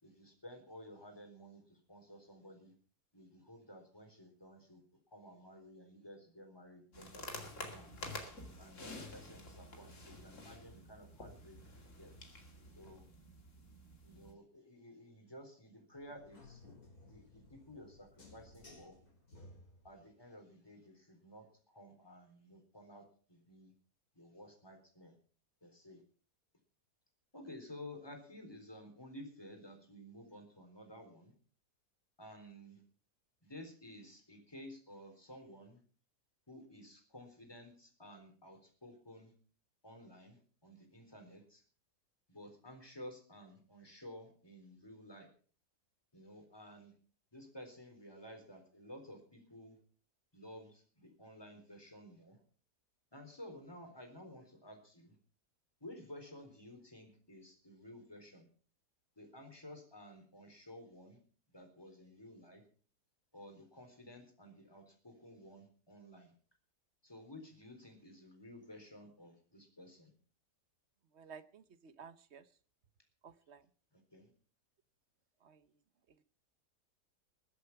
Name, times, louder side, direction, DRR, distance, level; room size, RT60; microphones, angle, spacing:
voice 1, 0.0-2.7 3.1-4.8 5.1-7.4 7.7-7.9 8.6-12.1 12.8-13.1 14.0-16.6 17.0-19.0 19.8-23.7 24.1-25.2 25.6-26.0 27.3-31.3 32.2-32.8 33.4-35.8 36.5-39.3 39.8-41.6 42.3-45.3 46.1-46.9 47.3-49.8 50.3-52.4 53.1-55.1 55.8-58.5 59.2-61.2 61.5-62.6 63.3-66.3 67.0-70.1 73.9-74.3, left 1 dB, 15° left, 4 dB, 4.0 m, -54 dB
sound 1, 6.9-14.3, left 2 dB, 50° left, 2.7 m, -49 dB
sound 2, 15.9-20.0, left 2 dB, 70° left, 5.7 m, -58 dB
voice 2, 71.1-72.5 73.2-73.6 75.4-75.6, right 6 dB, 50° right, 13 dB, 1.1 m, -54 dB
21.5 x 8.1 x 5.9 m, 0.43 s
omnidirectional pair, 1.7 m